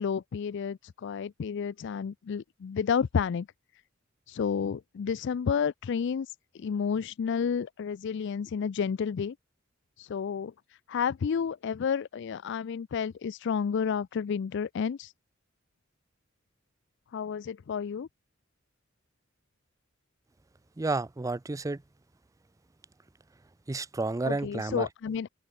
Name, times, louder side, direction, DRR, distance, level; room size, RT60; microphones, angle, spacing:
voice 1, 0.0-3.5 4.3-9.3 10.0-10.5 10.9-15.1 17.1-18.1 24.2-25.3, left 6 dB, 60° left, 0.4 m, -31 dB
voice 2, 20.8-21.8 23.7-24.9, right 3 dB, 15° right, 0.4 m, -31 dB
open air
head